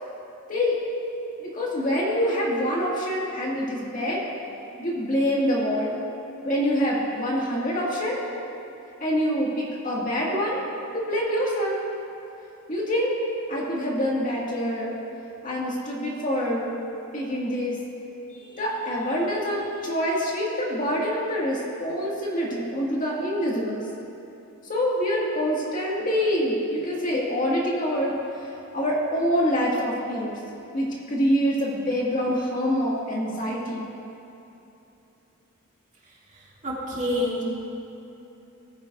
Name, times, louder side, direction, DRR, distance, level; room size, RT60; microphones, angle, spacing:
voice 1, 1.4-4.3 4.8-6.0 6.4-8.2 9.0-10.6 10.9-11.8 12.7-13.1 13.5-14.9 15.4-16.7 17.1-17.8 18.3-23.8 24.7-28.1 28.7-30.3 30.7-33.9, equal, 40° left, -4 dB, 2.0 m, -25 dB
voice 2, 36.3-37.4, left 1 dB, 35° right, -5 dB, 2.1 m, -28 dB
18.0 x 10.0 x 2.6 m, 2.9 s
head